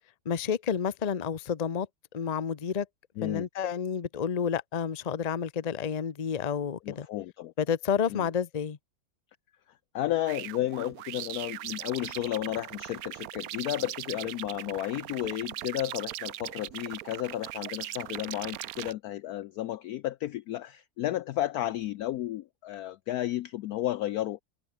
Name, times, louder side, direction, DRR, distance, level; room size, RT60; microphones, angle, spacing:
voice 1, 0.2-1.9 2.1-2.9 3.2-7.1 7.6-8.8, left 7 dB, 40° left, 0.5 m, -30 dB
voice 2, 3.2-3.5 6.8-7.5 8.1-8.3 9.9-24.4, left 14 dB, 80° left, 0.8 m, -33 dB
sound 1, 10.3-18.9, right 14 dB, 70° right, 0.8 m, -39 dB
omnidirectional pair, 2.1 m